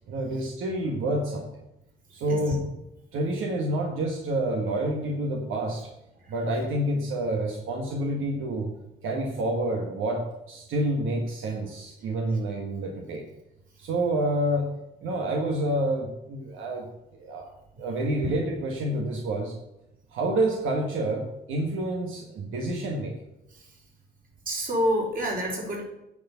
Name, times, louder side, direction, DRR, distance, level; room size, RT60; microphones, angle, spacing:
voice 1, 0.1-1.5 2.1-2.6 3.1-5.9 6.3-8.7 9.0-13.3 13.8-14.7 15.0-16.9 17.2-19.5 20.1-23.1, right 1 dB, 80° right, 1 dB, 1.6 m, -28 dB
voice 2, 2.2-2.6 6.1-6.6 12.0-12.1 13.7-13.8 22.6-22.7 23.5-23.8 24.4-25.9, equal, 45° right, -2 dB, 4.3 m, -30 dB
10.0 x 4.9 x 6.8 m, 0.87 s
cardioid pair, 90°, 20 cm